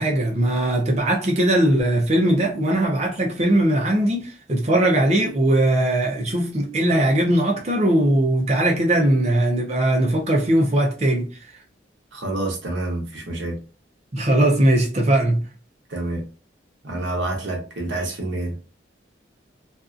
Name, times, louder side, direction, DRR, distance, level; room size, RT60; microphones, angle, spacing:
voice 1, 0.0-11.3 14.1-15.5, right 1 dB, 35° right, 0.6 m, -20 dB
voice 2, 12.1-13.6 15.9-16.2 16.8-18.5, right 2 dB, 65° right, 0.8 m, -28 dB
2.6 x 2.4 x 2.4 m
head